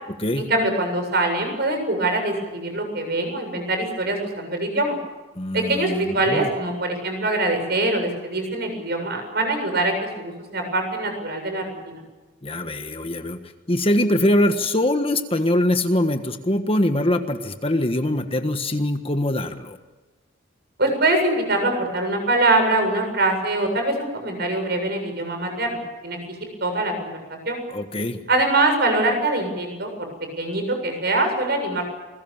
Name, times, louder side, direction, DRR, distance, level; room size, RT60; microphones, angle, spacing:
voice 1, 0.4-5.0 5.5-12.0 20.8-26.2 26.6-27.6 28.3-29.9 30.4-31.8, right 2 dB, 50° right, 5 dB, 7.6 m, -23 dB
voice 2, 5.4-6.5 12.4-13.4 13.7-19.8 27.7-28.2, left 1 dB, 30° left, 7 dB, 1.5 m, -23 dB
29.0 x 21.5 x 7.3 m, 1.2 s
head